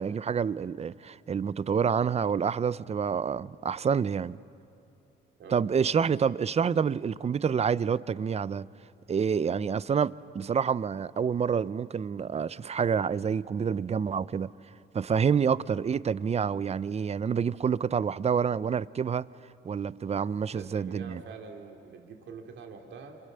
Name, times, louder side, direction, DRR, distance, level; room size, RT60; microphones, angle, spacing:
voice 1, 0.0-4.4 5.5-8.7 9.1-14.5 14.9-19.3 19.6-21.2, right 6 dB, 35° right, 0.6 m, -28 dB
voice 2, 5.4-5.9 20.5-23.2, right 5 dB, 70° right, 3.0 m, -45 dB
29.0 x 27.5 x 6.8 m
cardioid pair, 90°, 20 cm